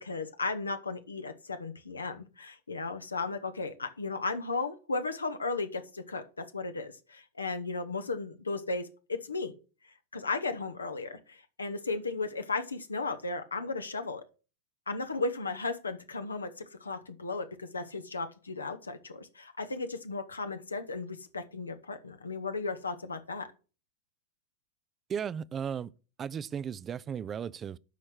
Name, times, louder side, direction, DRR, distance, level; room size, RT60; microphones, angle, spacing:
voice 1, 0.0-9.5 9.8-14.2 14.9-23.5, left 3 dB, 75° left, 0.9 m, -35 dB
voice 2, 25.1-25.9 26.2-27.8, right 7 dB, 25° right, 0.4 m, -35 dB
12.0 x 4.4 x 6.2 m
figure-of-eight pair, 90°, 0 cm